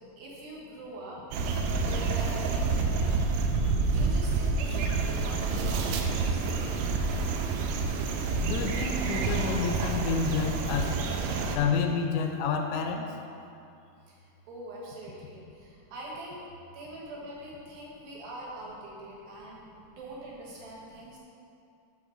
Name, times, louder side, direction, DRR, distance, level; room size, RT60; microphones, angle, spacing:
voice 1, 0.2-1.2 1.8-6.5 14.1-14.2 14.5-16.4 16.7-21.2, right 1 dB, 65° right, -5 dB, 2.7 m, -43 dB
sound 1, 1.3-11.6, right 4 dB, 85° right, 2.8 m, -28 dB
voice 2, 8.4-11.0 11.6-13.1, left 5 dB, 85° left, 4 dB, 2.8 m, -29 dB
8.1 x 6.2 x 3.8 m, 2.6 s
omnidirectional pair, 5.1 m